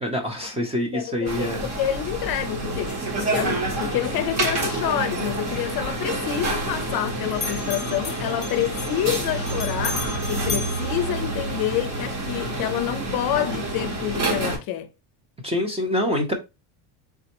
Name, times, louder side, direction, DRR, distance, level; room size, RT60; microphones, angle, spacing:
voice 1, 0.0-1.7 15.4-16.3, left 1 dB, 15° right, 0.6 m, -25 dB
voice 2, 0.9-10.0 10.3-14.9, left 12 dB, 50° left, 0.6 m, -28 dB
sound 1, 1.3-14.6, right 2 dB, 35° right, 1.1 m, -28 dB
Bell, 5.7-7.1 7.3-11.8, left 6 dB, 20° left, 1.0 m, -36 dB
sound 2, 9.2-13.3, right 6 dB, 60° right, 0.7 m, -34 dB
4.1 x 3.4 x 2.9 m
cardioid pair, 160°, 46 cm